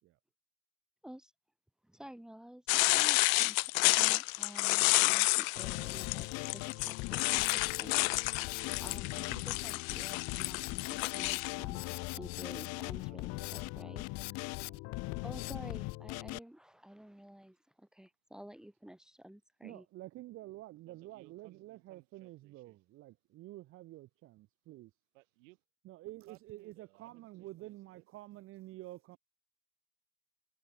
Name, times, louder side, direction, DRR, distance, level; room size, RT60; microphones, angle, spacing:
voice 1, 1.8-8.0 8.8-11.9 12.1-14.1 14.4-14.5 15.2-19.8, equal, ahead, 3.1 m, -51 dB
sound 1, 2.7-11.5, left 26 dB, 85° left, 0.6 m, -30 dB
Drum kit, 5.6-16.4, left 26 dB, 40° left, 0.8 m, -40 dB
voice 2, 13.1-16.3 20.9-22.8 25.1-25.6 26.3-28.0, right 24 dB, 70° right, 5.2 m, -64 dB
voice 3, 19.6-24.9 25.8-29.2, right 17 dB, 35° right, 1.5 m, -49 dB
cardioid pair, 180°, 39 cm